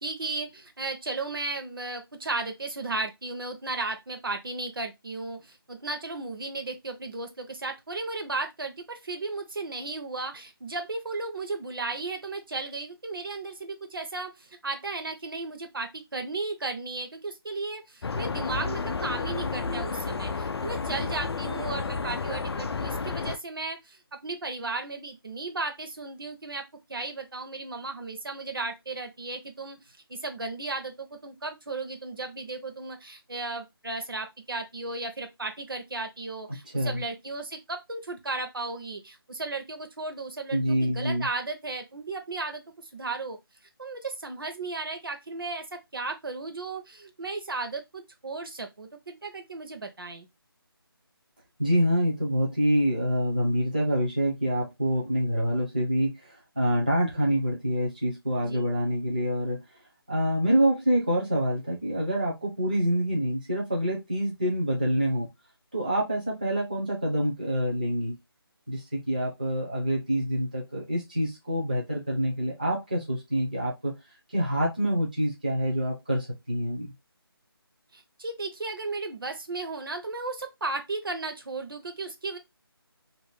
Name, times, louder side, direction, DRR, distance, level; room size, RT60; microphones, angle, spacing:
voice 1, 0.0-26.6 26.9-42.6 42.9-43.4 43.8-50.3 58.4-58.7 77.9-82.4, right 3 dB, 60° right, 0.7 m, -35 dB
sound 1, 18.0-23.4, left 4 dB, 90° left, 0.4 m, -31 dB
voice 2, 40.5-41.3 51.6-59.6 60.1-65.3 65.7-68.2 68.7-73.9 74.3-76.9, equal, 20° right, 0.5 m, -26 dB
2.5 x 2.2 x 3.2 m
figure-of-eight pair, 180°, 13 cm